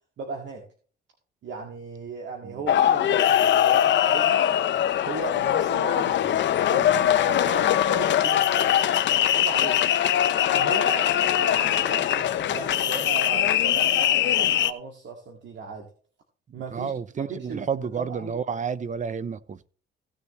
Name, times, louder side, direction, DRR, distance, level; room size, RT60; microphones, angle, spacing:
voice 1, 0.2-0.6 1.4-4.5 5.0-6.4 6.7-8.7 9.2-9.8 10.5-15.9 16.5-18.4, right 5 dB, 65° right, 2.2 m, -37 dB
sound 1, 2.7-14.7, left 11 dB, 65° left, 0.8 m, -22 dB
voice 2, 16.7-19.7, right 6 dB, 40° right, 0.8 m, -30 dB
16.5 x 7.0 x 3.1 m
cardioid pair, 90°, 20 cm